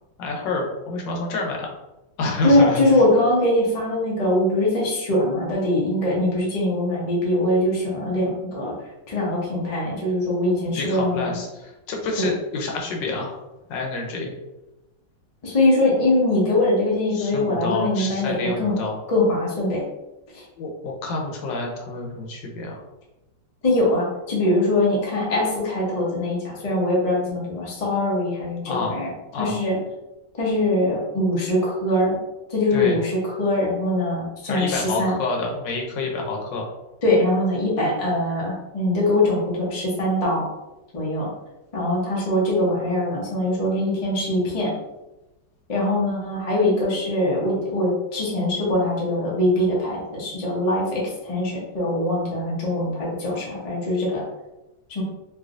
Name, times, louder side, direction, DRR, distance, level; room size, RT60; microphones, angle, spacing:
voice 1, 0.2-1.7 2.2-2.8 10.7-13.4 13.7-14.3 17.1-19.0 20.6-22.8 28.7-29.0 29.3-29.6 32.7-33.0 34.5-36.7, left 3 dB, 80° left, 0 dB, 1.3 m, -28 dB
voice 2, 2.4-8.7 9.1-11.3 12.2-12.3 15.4-18.7 19.1-19.8 20.3-20.4 23.6-29.1 29.4-29.8 30.4-32.2 32.5-35.1 37.0-40.5 40.9-41.3 41.7-44.7 45.7-54.2 54.9-55.0, left 1 dB, 35° left, -5 dB, 0.5 m, -22 dB
3.2 x 3.0 x 2.5 m, 1.0 s
omnidirectional pair, 2.0 m